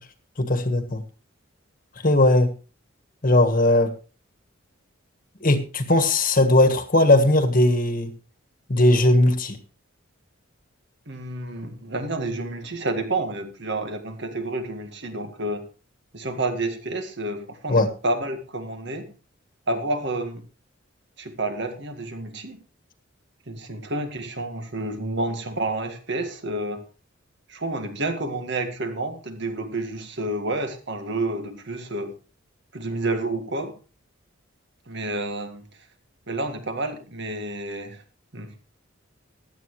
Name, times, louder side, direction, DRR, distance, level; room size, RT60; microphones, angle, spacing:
voice 1, 0.4-1.0 2.0-2.5 3.2-3.9 5.4-8.1 8.7-9.6 17.7-17.9, left 1 dB, 40° left, 8 dB, 1.5 m, -18 dB
voice 2, 11.1-15.7 16.1-19.1 19.7-20.5 21.2-22.6 23.5-26.8 27.5-32.2 32.7-33.8 34.9-35.7 36.3-38.0 38.3-38.5, right 2 dB, 55° right, 7 dB, 1.8 m, -29 dB
15.5 x 11.0 x 3.2 m, 0.34 s
head